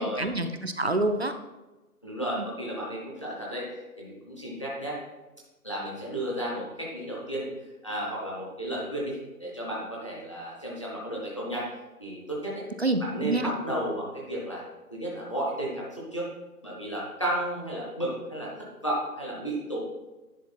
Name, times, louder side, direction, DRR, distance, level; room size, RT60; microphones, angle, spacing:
voice 1, 0.0-1.3 2.2-2.5 12.8-13.5, right 2 dB, 45° right, 8 dB, 0.4 m, -27 dB
voice 2, 2.0-5.0 5.6-7.5 7.8-11.7 12.0-12.6 13.0-14.6 14.9-16.3 16.6-19.8, right 1 dB, 20° left, -5 dB, 0.9 m, -33 dB
10.0 x 4.3 x 4.3 m, 1.1 s
figure-of-eight pair, 170°, 46 cm